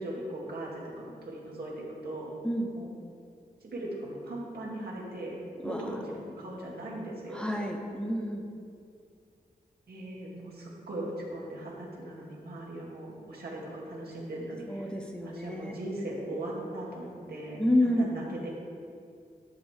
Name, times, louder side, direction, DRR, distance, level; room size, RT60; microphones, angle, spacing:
voice 1, 0.0-2.3 2.7-2.9 3.6-7.5 9.9-15.0 15.2-18.5, right 1 dB, 90° right, -4 dB, 2.2 m, -39 dB
voice 2, 5.6-6.0 7.3-8.5 14.7-15.7 17.6-18.1, left 1 dB, 5° left, 1 dB, 1.0 m, -29 dB
12.0 x 7.7 x 3.6 m, 2.4 s
wide cardioid pair, 110°, 16 cm